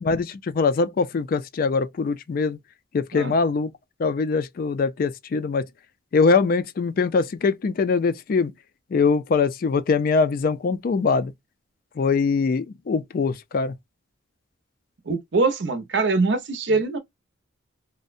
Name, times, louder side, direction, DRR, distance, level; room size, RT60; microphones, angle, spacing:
voice 1, 0.0-2.6 2.9-3.7 4.0-5.6 6.1-8.5 8.9-11.3 12.0-13.7, left 4 dB, 50° left, 0.3 m, -22 dB
voice 2, 15.1-17.0, right 3 dB, 65° right, 0.6 m, -23 dB
2.6 x 2.1 x 2.4 m
head